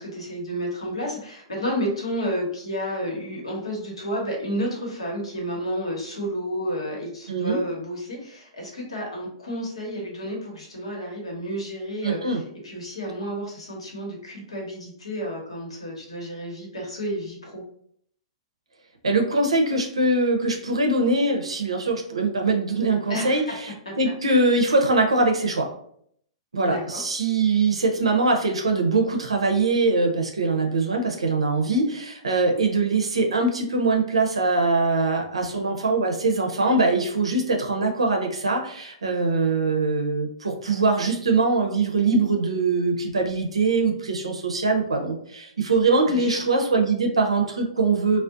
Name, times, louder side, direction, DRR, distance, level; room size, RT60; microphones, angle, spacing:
voice 1, 0.0-17.6 23.1-23.5 23.8-23.9 26.6-27.0 46.1-46.3, equal, 80° left, -2 dB, 1.0 m, -31 dB
voice 2, 7.3-7.6 12.0-12.4 19.0-25.7 26.5-48.2, right 3 dB, 85° right, 2 dB, 0.5 m, -22 dB
2.5 x 2.0 x 2.4 m, 0.66 s
figure-of-eight pair, 110°, 3 cm